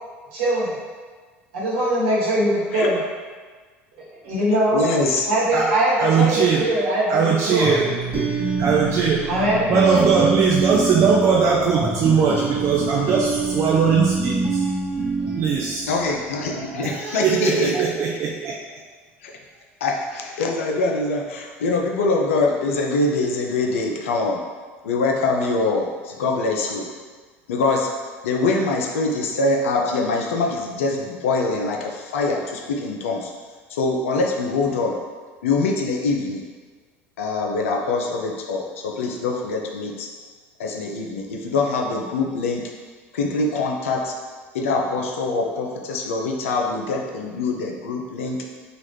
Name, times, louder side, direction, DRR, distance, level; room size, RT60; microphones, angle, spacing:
voice 1, 0.3-0.7 1.5-3.0 4.2-4.8 5.3-7.8 9.3-10.2, right 1 dB, 70° right, -7 dB, 1.2 m, -21 dB
voice 2, 4.7-5.3 15.9-17.7 18.1-18.2 19.2-19.3 19.8-24.4 24.8-26.9 27.5-27.9 28.2-33.3 33.7-35.0 35.4-36.5 37.2-40.1 40.6-42.7 43.1-44.2 44.5-48.5, left 3 dB, 75° left, 1 dB, 0.4 m, -24 dB
voice 3, 6.0-6.7 7.1-8.3 8.6-9.2 9.7-14.6 15.4-15.9 16.5-18.6, right 6 dB, 45° right, -3 dB, 0.4 m, -20 dB
sound 1, 7.6-16.4, right 3 dB, 15° right, 0.8 m, -25 dB
2.9 x 2.4 x 3.2 m, 1.5 s
hypercardioid pair, 70°, 7 cm